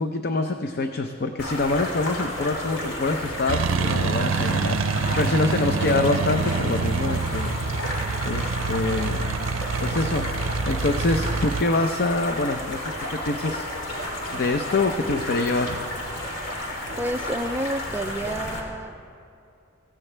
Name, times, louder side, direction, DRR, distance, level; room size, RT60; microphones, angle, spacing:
voice 1, 0.0-4.8 5.2-7.6 8.2-9.3 9.8-10.3 10.7-13.7 14.3-15.8, left 2 dB, 55° left, 6 dB, 0.6 m, -25 dB
sound 1, 1.4-18.6, left 1 dB, 85° left, 3.1 m, -32 dB
sound 2, 3.5-11.6, right 4 dB, 75° right, 0.5 m, -26 dB
voice 2, 17.0-19.1, right 1 dB, 10° right, 6 dB, 0.4 m, -30 dB
25.5 x 16.0 x 3.3 m, 2.6 s
head